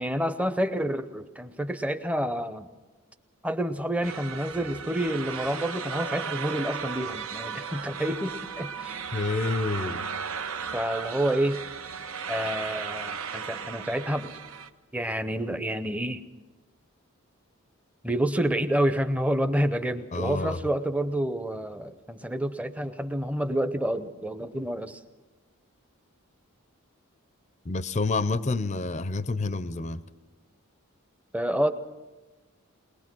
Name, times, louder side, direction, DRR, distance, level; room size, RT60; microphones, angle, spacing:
voice 1, 0.0-2.7 3.4-9.1 10.7-11.6 12.3-14.3 14.9-16.2 18.0-25.0 31.3-31.7, right 1 dB, 5° right, 10 dB, 0.7 m, -28 dB
sound 1, 4.0-14.7, right 6 dB, 75° right, 0.9 m, -35 dB
voice 2, 9.1-10.1 20.1-20.6 27.6-30.0, left 3 dB, 30° left, 14 dB, 0.5 m, -28 dB
21.0 x 21.0 x 6.1 m, 1.2 s
head